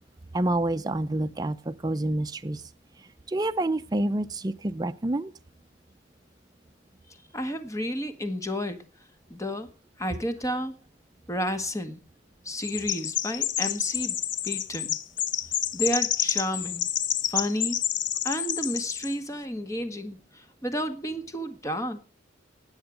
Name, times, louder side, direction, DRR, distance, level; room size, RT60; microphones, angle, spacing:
voice 1, 0.3-2.6 3.3-5.3, right 1 dB, 20° right, 0.6 m, -28 dB
voice 2, 7.3-8.8 9.3-9.7 10.0-10.7 11.3-12.0 12.5-14.2 14.4-15.0 15.7-16.9 17.3-17.8 18.2-22.0, equal, 20° left, 1.7 m, -31 dB
Chirp tweet, 12.6-19.1, left 10 dB, 85° left, 0.9 m, -29 dB
18.5 x 8.0 x 5.2 m
head